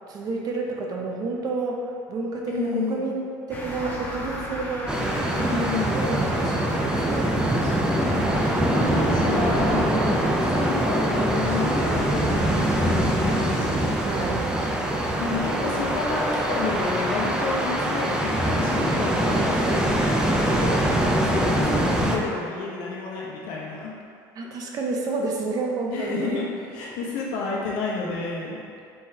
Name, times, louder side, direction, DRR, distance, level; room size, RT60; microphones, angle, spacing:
voice 1, 0.1-7.7 14.0-14.5 24.4-26.5, right 3 dB, 45° right, 0 dB, 0.7 m, -30 dB
voice 2, 2.5-3.1 5.4-6.0 7.6-10.1 10.5-13.9 15.2-23.9 25.9-26.4 26.7-28.6, left 4 dB, 75° left, -3 dB, 0.9 m, -30 dB
sound 1, 3.5-13.4, left 1 dB, 20° left, 0.9 m, -38 dB
sound 2, 4.9-22.2, right 1 dB, 10° right, 0.5 m, -23 dB
4.4 x 3.8 x 2.8 m, 2.4 s
supercardioid pair, 100°, 9 cm